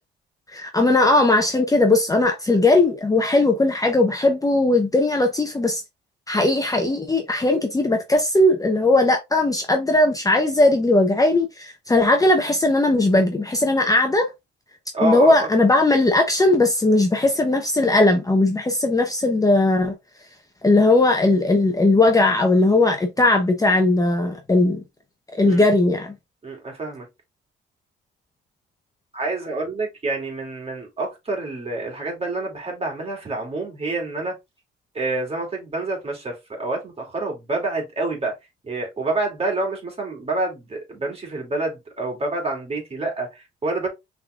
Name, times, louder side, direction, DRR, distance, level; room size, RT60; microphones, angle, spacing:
voice 1, 0.5-5.8 6.3-14.3 15.0-19.9 20.6-24.8 25.4-26.1, left 2 dB, 15° left, 0.9 m, -18 dB
voice 2, 14.9-15.5 25.4-25.6 26.4-27.1 29.1-34.4 34.9-38.3 38.6-43.9, right 2 dB, 30° right, 2.7 m, -27 dB
5.7 x 3.7 x 2.5 m
cardioid pair, 90°, 20 cm